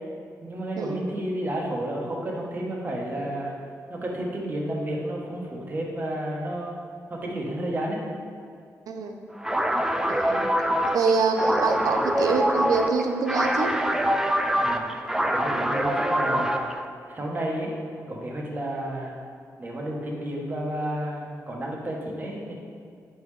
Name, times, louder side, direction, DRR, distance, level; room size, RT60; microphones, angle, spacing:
voice 1, 0.4-3.5 3.9-6.8 7.1-8.0 14.6-15.0 15.3-16.6 17.1-19.2 19.6-22.5, right 1 dB, 30° right, -1 dB, 1.1 m, -31 dB
voice 2, 8.9-9.2 10.1-10.5 10.8-13.8, right 4 dB, 80° right, 5 dB, 0.6 m, -25 dB
sound 1, 9.4-16.8, equal, 10° right, 0.3 m, -25 dB
8.6 x 5.4 x 3.2 m, 2.3 s
wide cardioid pair, 145°, 6 cm